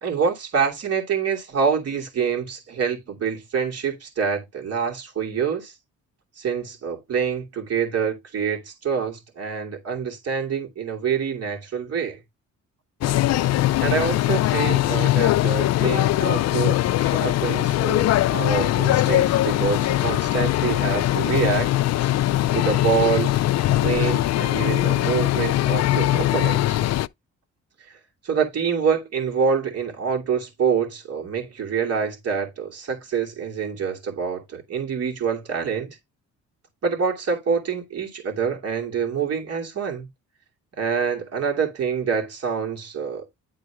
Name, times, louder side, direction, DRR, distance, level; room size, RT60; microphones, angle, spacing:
voice 1, 0.0-5.7 6.4-12.2 13.8-21.7 22.5-23.3 23.7-26.8 27.9-28.0 28.2-36.0 36.8-40.1 40.8-43.2, right 6 dB, 55° right, 2.6 m, -26 dB
sound 1, 13.0-27.1, left 14 dB, 60° left, 0.4 m, -21 dB
10.0 x 3.8 x 3.4 m
cardioid pair, 90°, 30 cm